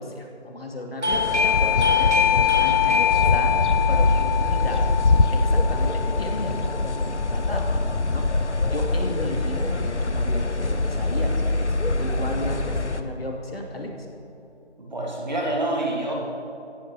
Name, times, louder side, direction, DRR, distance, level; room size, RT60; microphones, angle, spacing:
voice 1, 0.0-4.9 5.3-14.1, left 1 dB, 55° left, 1 dB, 2.8 m, -34 dB
Doorbell, 1.0-7.5, left 8 dB, 85° right, 2.0 m, -24 dB
sound 1, 1.1-13.0, left 2 dB, 80° left, 1.2 m, -24 dB
voice 2, 14.8-16.1, right 1 dB, 40° right, -2 dB, 2.7 m, -27 dB
17.0 x 14.5 x 4.9 m, 2.7 s
figure-of-eight pair, 175°, 34 cm